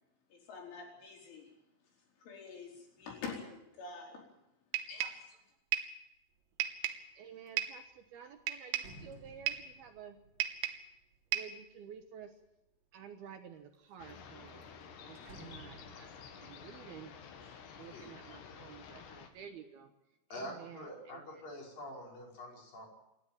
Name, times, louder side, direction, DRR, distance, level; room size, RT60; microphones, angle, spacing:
voice 1, 0.3-1.5 1.8-4.2 4.9-5.4, left 5 dB, 80° left, 0 dB, 7.2 m, -47 dB
sound 1, 4.7-5.3 5.7-6.0 6.6-7.1 7.6-7.9 8.5-9.0 9.5-9.7 10.4-10.9 11.3-11.6, right 11 dB, 85° right, 3.8 m, -36 dB
sound 2, 6.4-6.7 7.1-12.5 13.1-13.8 14.1-14.2 14.5-18.4 18.8-19.4, right 2 dB, 40° right, 4.6 m, -58 dB
voice 2, 7.1-10.2 11.3-12.4 12.9-14.6 15.0-17.1 17.7-19.9 20.3-21.3, right 8 dB, 70° right, 6 dB, 2.7 m, -52 dB
sound 3, 14.0-19.3, left 6 dB, 65° left, 3.9 m, -51 dB
voice 3, 17.4-18.1 20.3-22.9, left 1 dB, 45° left, 0 dB, 7.2 m, -46 dB
28.0 x 12.5 x 9.1 m, 0.91 s
omnidirectional pair, 5.4 m